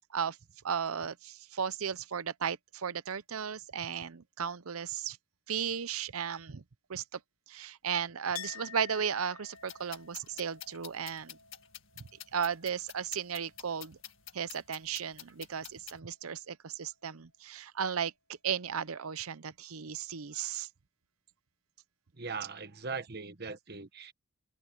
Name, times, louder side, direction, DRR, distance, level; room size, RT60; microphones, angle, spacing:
voice 1, 0.6-5.2 5.5-6.6 6.9-7.2 7.5-11.4 12.3-14.0 14.3-18.1 18.4-20.7, right 7 dB, 75° right, 0.7 m, -35 dB
Chink clink, 8.3-13.9 14.2-15.0, left 9 dB, 80° left, 1.2 m, -51 dB
sound 1, 9.6-16.0, left 12 dB, 60° left, 2.1 m, -49 dB
voice 2, 22.2-24.1, right 4 dB, 45° right, 1.3 m, -40 dB
head